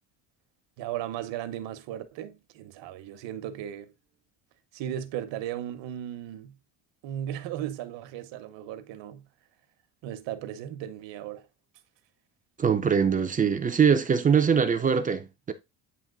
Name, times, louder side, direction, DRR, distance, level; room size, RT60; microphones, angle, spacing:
voice 1, 0.8-3.9 4.7-6.6 7.0-9.3 10.0-11.5, right 11 dB, 70° right, 1.0 m, -36 dB
voice 2, 12.6-15.5, right 6 dB, 20° right, 0.4 m, -23 dB
8.7 x 3.0 x 3.8 m
cardioid pair, 175°, 45 cm